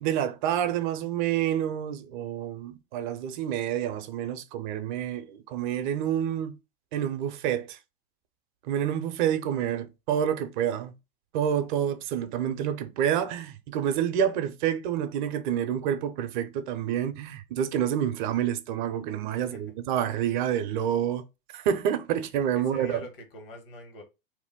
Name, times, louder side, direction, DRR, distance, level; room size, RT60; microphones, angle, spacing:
voice 1, 0.0-6.5 6.9-7.8 8.6-10.9 11.3-21.2 21.5-23.0, right 9 dB, 55° right, 0.5 m, -28 dB
voice 2, 19.3-19.7 22.5-24.0, left 1 dB, 70° left, 1.3 m, -44 dB
2.6 x 2.1 x 3.5 m
hypercardioid pair, 120°, 29 cm